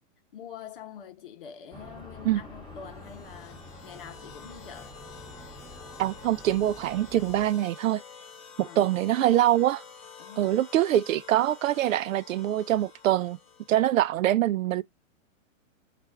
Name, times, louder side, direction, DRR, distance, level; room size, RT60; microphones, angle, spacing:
voice 1, 0.3-5.0 8.6-8.9 10.2-10.5, left 8 dB, 45° left, 0.8 m, -45 dB
sound 1, 1.7-7.5, left 1 dB, 10° right, 0.6 m, -47 dB
sound 2, 2.8-14.1, left 6 dB, 25° left, 1.1 m, -49 dB
voice 2, 6.0-8.0 8.6-9.8 10.4-13.4 13.7-14.8, right 13 dB, 75° right, 0.5 m, -24 dB
4.7 x 2.5 x 3.2 m
hypercardioid pair, 180°, 40 cm